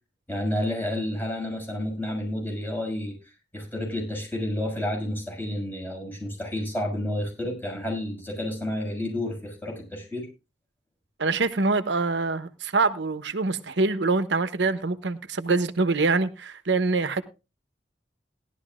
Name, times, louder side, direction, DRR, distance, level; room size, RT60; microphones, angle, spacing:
voice 1, 0.3-10.3, left 1 dB, 10° left, 6.5 m, -30 dB
voice 2, 11.2-17.2, right 3 dB, 90° right, 0.9 m, -25 dB
18.0 x 12.0 x 2.5 m
head